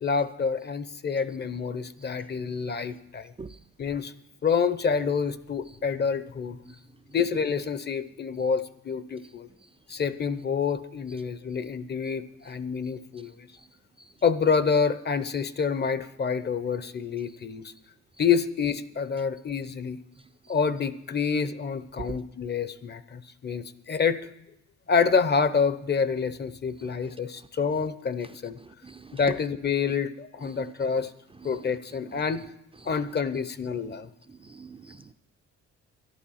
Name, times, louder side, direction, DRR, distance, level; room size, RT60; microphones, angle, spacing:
voice 1, 0.0-3.3 3.8-4.1 4.4-6.6 7.1-9.5 9.9-13.5 14.2-17.7 18.2-20.0 20.5-24.2 24.9-28.6 29.1-31.1 31.4-32.4 32.9-34.1, left 6 dB, 35° left, 14 dB, 0.7 m, -27 dB
voice 2, 34.5-35.1, right 5 dB, 20° right, 8 dB, 0.4 m, -44 dB
11.5 x 11.5 x 5.7 m, 0.81 s
cardioid pair, 90°, 30 cm